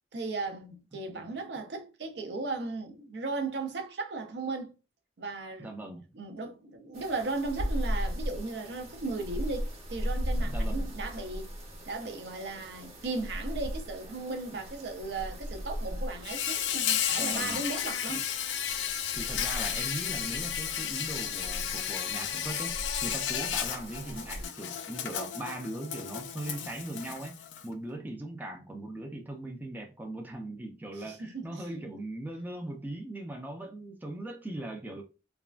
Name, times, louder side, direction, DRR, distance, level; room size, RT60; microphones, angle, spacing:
voice 1, 0.1-4.7 5.2-5.7 6.1-11.5 11.9-18.2 31.0-31.8, right 3 dB, 65° right, 0.5 m, -36 dB
voice 2, 5.6-6.0 10.4-10.9 14.5-14.6 17.2-17.6 18.1-18.2 19.1-35.0, right 1 dB, 10° right, 0.4 m, -39 dB
sound 1, 6.9-24.5, equal, 35° right, 0.9 m, -38 dB
Insect, 16.2-27.6, left 9 dB, 85° left, 0.4 m, -33 dB
3.3 x 2.3 x 2.4 m
head